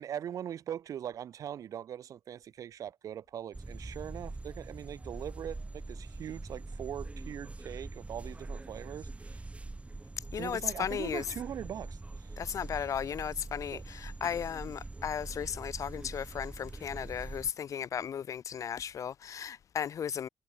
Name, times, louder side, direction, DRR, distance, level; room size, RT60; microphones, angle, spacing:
voice 1, 0.0-9.4 10.4-12.4 13.7-13.8, right 10 dB, 70° right, 2.9 m, -41 dB
sound 1, 3.5-17.5, right 2 dB, 20° right, 5.0 m, -43 dB
voice 2, 10.3-11.3 12.4-20.3, left 8 dB, 65° left, 2.6 m, -35 dB
cardioid pair, 75°, 6 cm